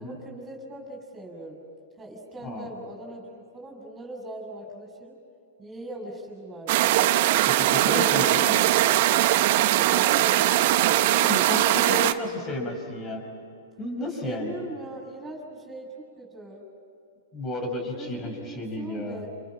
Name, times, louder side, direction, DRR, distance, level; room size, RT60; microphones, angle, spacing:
voice 1, 0.0-1.6 2.0-5.2 5.6-7.0 7.4-8.6 9.5-11.1 14.0-16.6 17.8-19.3, right 1 dB, 15° right, 0 dB, 7.0 m, -40 dB
sound 1, 6.7-12.1, right 14 dB, 55° right, 1.1 m, -21 dB
voice 2, 7.6-8.6 11.1-13.2 13.8-14.5 17.3-19.2, left 1 dB, 30° left, 4 dB, 6.7 m, -32 dB
29.0 x 29.0 x 6.1 m, 2.7 s
hypercardioid pair, 115°, 0 cm